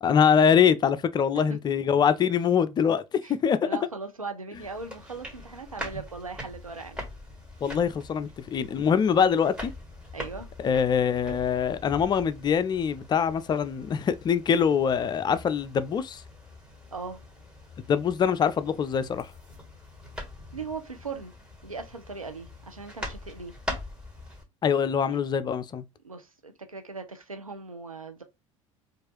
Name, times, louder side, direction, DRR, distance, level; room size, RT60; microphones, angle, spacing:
voice 1, 0.0-3.0 3.4-3.7 7.6-9.7 10.6-16.2 17.9-19.3 24.6-25.8, left 7 dB, 25° left, 0.4 m, -24 dB
voice 2, 3.6-7.0 10.1-10.5 16.9-17.2 20.5-21.3 21.6-23.5 25.1-25.2 26.0-28.2, right 4 dB, 90° right, 0.7 m, -39 dB
sound 1, 4.5-24.4, left 1 dB, 5° right, 1.7 m, -43 dB
4.6 x 2.5 x 2.9 m
figure-of-eight pair, 70°, 17 cm